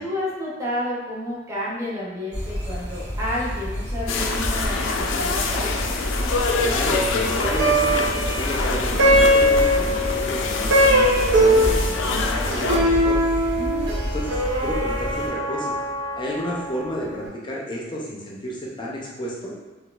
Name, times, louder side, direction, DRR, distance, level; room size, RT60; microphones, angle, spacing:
voice 1, 0.0-5.7 13.6-13.9, left 1 dB, 15° right, -7 dB, 0.8 m, -30 dB
sound 1, 2.3-15.3, equal, 60° right, 1.2 m, -29 dB
sound 2, 4.1-12.8, left 4 dB, 85° left, 0.4 m, -26 dB
voice 2, 6.6-13.2 14.0-15.7 16.1-19.5, equal, 25° left, -4 dB, 0.5 m, -31 dB
Plucked string instrument, 7.4-16.8, equal, 85° right, 0.6 m, -21 dB
4.1 x 2.4 x 2.3 m, 1.2 s
head